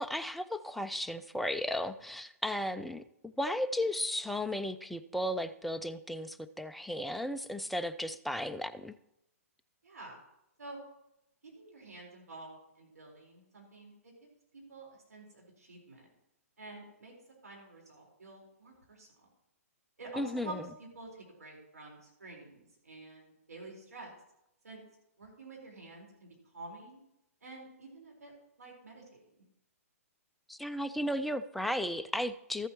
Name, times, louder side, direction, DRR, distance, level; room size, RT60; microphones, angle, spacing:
voice 1, 0.0-8.9 20.1-20.7 30.5-32.7, left 1 dB, ahead, 9 dB, 0.3 m, -35 dB
voice 2, 9.8-10.2 10.6-10.8 11.4-13.9 14.5-16.1 16.6-17.1 17.4-19.3 20.0-20.5 20.9-24.1 24.6-24.8 25.2-27.0 27.4-29.2, right 2 dB, 90° right, -1 dB, 4.4 m, -49 dB
14.0 x 8.8 x 3.0 m, 0.83 s
hypercardioid pair, 135°, 8 cm